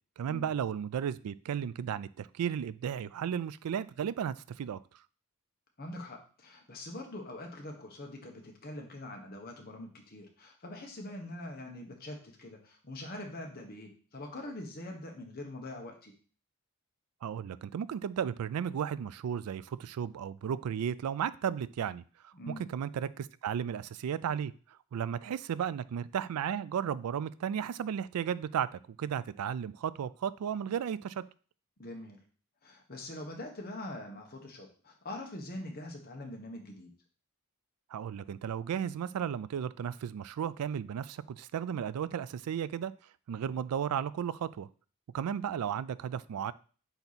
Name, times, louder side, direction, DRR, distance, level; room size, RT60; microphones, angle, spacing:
voice 1, 0.2-4.8 17.2-24.5 24.9-31.2 37.9-42.9 43.3-44.7 45.1-46.5, right 8 dB, 85° right, 0.3 m, -34 dB
voice 2, 5.8-16.1 22.3-22.7 31.8-32.2 32.6-36.9, left 1 dB, 40° left, 1.2 m, -43 dB
8.0 x 2.9 x 4.1 m
head